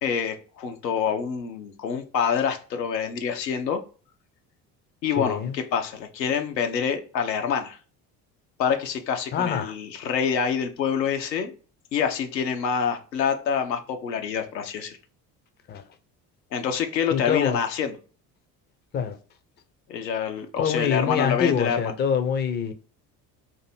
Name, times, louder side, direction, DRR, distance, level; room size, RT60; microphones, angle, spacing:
voice 1, 0.0-3.8 5.0-7.8 8.6-11.5 11.9-15.0 16.5-18.0 19.9-21.9, left 7 dB, 80° left, 0.7 m, -26 dB
voice 2, 5.2-5.5 9.3-9.7 15.7-15.8 17.1-17.6 18.9-19.2 20.6-22.7, left 7 dB, 20° left, 0.5 m, -25 dB
2.8 x 2.6 x 4.1 m
figure-of-eight pair, 60°, 50 cm